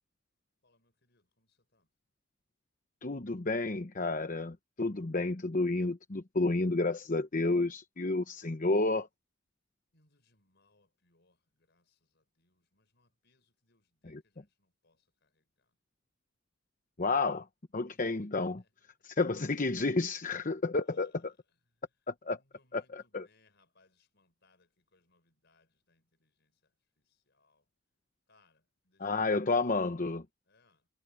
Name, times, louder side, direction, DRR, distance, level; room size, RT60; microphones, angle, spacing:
voice 1, 0.6-1.9 9.9-15.4 22.3-26.5 27.3-27.6 28.3-29.1 30.5-30.8, left 3 dB, 60° left, 5.7 m, -72 dB
voice 2, 3.0-9.1 14.0-14.2 17.0-17.5 17.7-18.6 19.0-21.3 22.1-22.4 22.7-23.3 29.0-30.2, left 3 dB, 40° left, 1.0 m, -31 dB
head